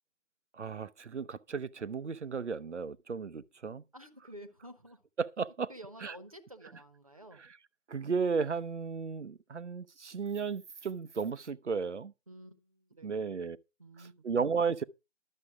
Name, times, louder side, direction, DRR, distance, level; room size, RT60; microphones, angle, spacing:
voice 1, 0.5-3.8 5.2-5.7 6.0-6.1 7.4-7.5 7.9-12.1 13.0-13.6 14.2-14.8, right 5 dB, 65° right, 0.9 m, -34 dB
voice 2, 3.9-5.0 5.7-7.4 12.3-13.5 13.8-14.2, right 1 dB, 30° right, 1.1 m, -51 dB
12.0 x 7.5 x 4.8 m
hypercardioid pair, 180°, 38 cm